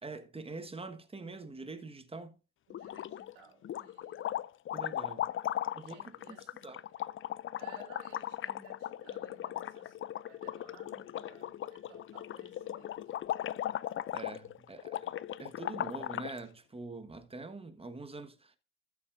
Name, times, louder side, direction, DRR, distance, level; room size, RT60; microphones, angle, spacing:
voice 1, 0.0-2.4 4.7-5.3 5.7-6.4 6.6-6.8 14.1-15.1 15.4-18.6, right 3 dB, 15° right, 1.4 m, -44 dB
sound 1, 2.7-3.3 3.6-16.4, left 11 dB, 35° left, 0.4 m, -38 dB
voice 2, 2.7-4.4 5.3-6.7 7.6-13.1, right 4 dB, 80° right, 3.8 m, -58 dB
13.5 x 7.1 x 2.6 m
hypercardioid pair, 65°, 40 cm